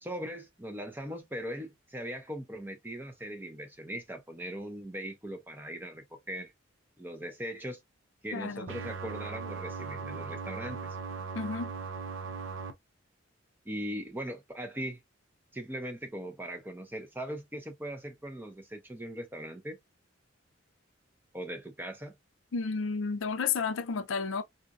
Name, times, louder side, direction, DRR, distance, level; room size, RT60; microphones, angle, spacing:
voice 1, 0.0-6.5 7.0-7.8 8.2-11.0 13.6-15.0 15.5-19.8 21.3-22.1, equal, 10° right, 0.6 m, -40 dB
voice 2, 8.3-8.7 11.3-11.7 22.5-24.4, left 5 dB, 70° left, 0.5 m, -32 dB
sound 1, 8.7-12.7, right 5 dB, 75° right, 0.6 m, -38 dB
3.9 x 2.5 x 2.4 m
head